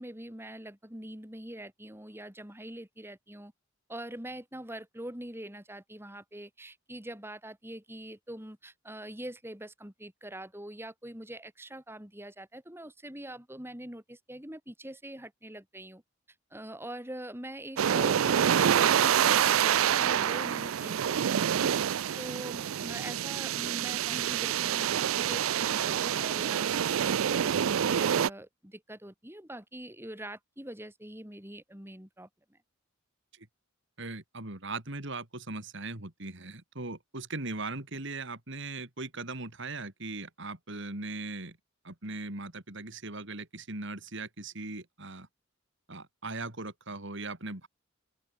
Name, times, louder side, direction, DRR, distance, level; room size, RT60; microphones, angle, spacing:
voice 1, 0.0-3.5 3.9-16.0 16.5-21.7 22.2-26.7 27.0-32.6, right 1 dB, 10° right, 3.2 m, -44 dB
sound 1, 17.8-28.3, right 9 dB, 75° right, 0.4 m, -27 dB
voice 2, 34.0-41.6 41.8-45.3 45.9-47.7, right 3 dB, 60° right, 3.2 m, -39 dB
open air
head